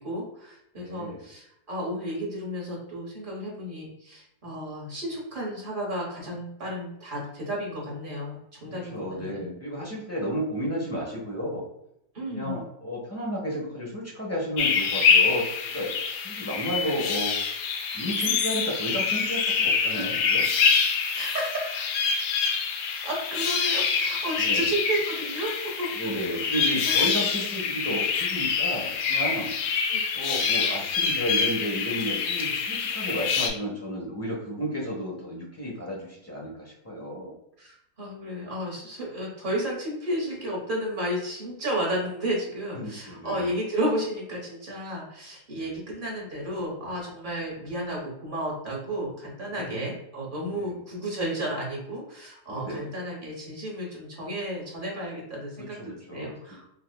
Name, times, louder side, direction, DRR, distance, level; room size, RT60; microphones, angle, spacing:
voice 1, 0.0-9.5 12.1-12.6 20.8-22.0 23.0-25.5 25.8-26.5 26.8-27.0 29.9-30.0 37.6-55.7 56.1-56.6, right 1 dB, 35° right, -3 dB, 1.2 m, -32 dB
voice 2, 0.8-1.2 8.8-11.6 12.3-15.9 16.2-17.4 17.9-20.5 24.4-24.7 25.9-29.5 30.1-37.3 42.8-43.5 45.6-45.8 49.6-49.8 50.5-50.7 52.5-52.9 55.6-56.3, equal, 15° left, -4 dB, 0.6 m, -32 dB
sound 1, 14.6-33.5, left 6 dB, 80° left, 1.1 m, -26 dB
5.0 x 2.4 x 2.2 m, 0.79 s
omnidirectional pair, 1.8 m